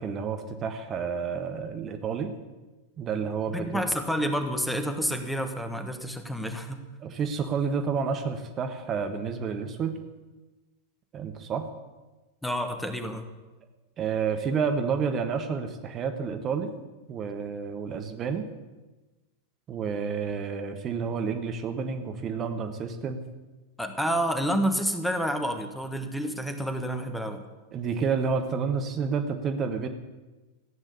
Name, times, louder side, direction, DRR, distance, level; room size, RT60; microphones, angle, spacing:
voice 1, 0.0-2.3 3.0-3.8 7.0-10.0 11.1-11.7 14.0-16.7 17.1-18.5 19.7-23.2 27.7-29.9, right 6 dB, 30° right, 6 dB, 1.3 m, -30 dB
voice 2, 3.5-6.8 12.4-13.2 23.8-27.4, equal, 5° left, 7 dB, 1.5 m, -29 dB
15.5 x 9.0 x 8.6 m, 1.2 s
figure-of-eight pair, 90°, 0 cm